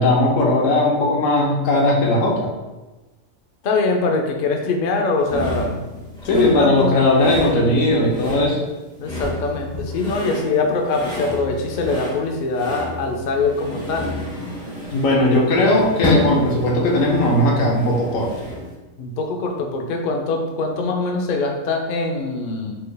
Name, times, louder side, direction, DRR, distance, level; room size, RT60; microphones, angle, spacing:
voice 1, 0.0-2.5 6.3-8.6 14.9-18.3, left 1 dB, 85° left, -2 dB, 1.2 m, -18 dB
voice 2, 3.6-5.9 6.3-7.0 9.0-14.1 19.0-22.8, left 3 dB, 65° left, 3 dB, 0.4 m, -23 dB
sound 1, 5.3-18.7, left 1 dB, 5° left, 0.6 m, -30 dB
4.3 x 3.2 x 2.2 m, 1.1 s
omnidirectional pair, 1.3 m